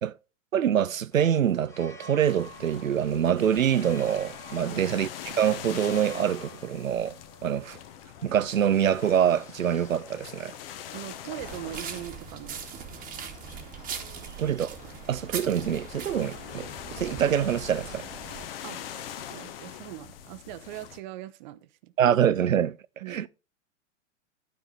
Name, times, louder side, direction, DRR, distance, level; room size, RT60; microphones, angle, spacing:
voice 1, 0.5-7.8 8.2-10.5 14.4-14.8 15.1-16.7 17.0-18.1 22.0-22.8 23.1-23.3, right 9 dB, 90° right, 0.5 m, -25 dB
sound 1, 1.1-19.3, equal, 10° left, 0.8 m, -53 dB
sound 2, 2.2-21.0, left 10 dB, 45° left, 0.9 m, -43 dB
voice 2, 10.9-12.7 14.2-14.3 18.6-21.9 23.0-23.3, right 14 dB, 35° right, 0.7 m, -41 dB
sound 3, 11.4-18.4, right 8 dB, 20° right, 1.2 m, -40 dB
12.5 x 4.7 x 3.8 m
figure-of-eight pair, 105°, 39 cm